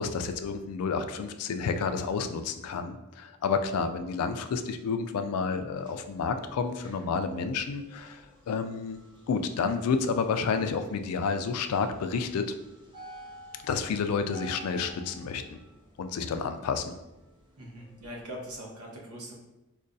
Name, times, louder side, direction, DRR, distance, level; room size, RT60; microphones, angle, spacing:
voice 1, 0.0-9.0 9.3-12.4 13.7-15.6 16.0-16.9, left 5 dB, 80° left, 8 dB, 0.3 m, -30 dB
sound 1, 5.5-18.6, right 1 dB, 20° right, 0.7 m, -53 dB
voice 2, 17.6-19.3, equal, 90° right, -2 dB, 0.9 m, -41 dB
5.0 x 2.2 x 2.6 m, 0.99 s
head